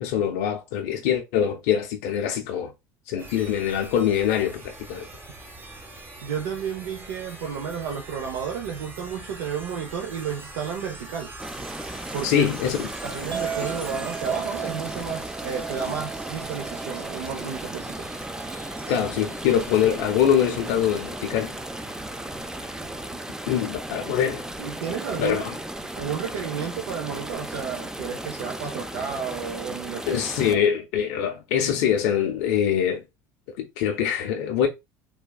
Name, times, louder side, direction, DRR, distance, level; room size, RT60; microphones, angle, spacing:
voice 1, 0.0-2.7 3.1-5.1 12.2-12.9 18.9-21.6 23.5-24.5 25.2-25.6 30.1-33.0 33.6-34.7, left 9 dB, 80° left, 0.5 m, -24 dB
sound 1, 3.2-23.2, right 2 dB, 25° right, 1.0 m, -43 dB
voice 2, 6.2-11.3 12.1-12.5 13.0-18.1 24.2-24.3 24.6-25.4 26.0-30.6, right 7 dB, 85° right, 0.6 m, -32 dB
sound 2, 11.4-30.6, right 1 dB, 5° right, 0.3 m, -36 dB
Chink clink, 13.3-19.6, right 7 dB, 40° right, 1.2 m, -38 dB
3.4 x 2.2 x 2.2 m
supercardioid pair, 85°, 9 cm